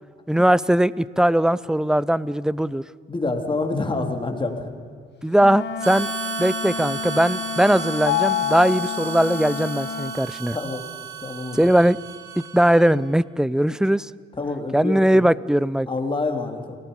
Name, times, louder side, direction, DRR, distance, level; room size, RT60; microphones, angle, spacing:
voice 1, 0.3-2.8 5.2-6.1 6.4-10.6 11.5-12.0 12.4-14.1 14.7-15.9, right 1 dB, 5° right, 19 dB, 0.6 m, -19 dB
voice 2, 3.1-4.7 10.5-10.8 11.2-11.7 14.4-15.2 15.9-16.8, left 3 dB, 25° left, 4 dB, 3.3 m, -27 dB
Wind instrument woodwind instrument, 5.4-10.2, left 6 dB, 60° left, 1.5 m, -32 dB
Harmonica, 5.8-13.1, right 8 dB, 80° right, 2.5 m, -34 dB
Mallet percussion, 8.1-10.0, left 15 dB, 75° left, 1.0 m, -27 dB
29.5 x 19.0 x 5.5 m, 2.1 s
cardioid pair, 90°, 20 cm